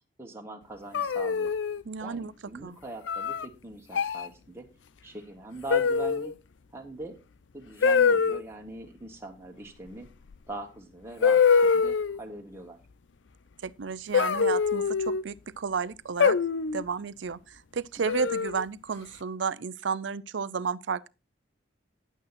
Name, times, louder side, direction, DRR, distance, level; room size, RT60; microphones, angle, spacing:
voice 1, 0.2-1.5 2.0-4.7 5.0-6.3 6.7-7.2 7.5-10.1 10.5-12.8, right 2 dB, 15° right, 1.6 m, -42 dB
sound 1, 0.9-1.8 3.1-3.5 3.9-4.3 5.7-6.3 7.8-8.4 10.3-10.4 11.2-12.2 14.1-15.2 16.2-16.8 18.1-18.6, left 5 dB, 80° left, 0.5 m, -24 dB
voice 2, 1.8-2.3 2.6-2.8 13.6-16.4 16.7-21.1, right 5 dB, 75° right, 0.6 m, -32 dB
10.0 x 8.9 x 4.2 m
head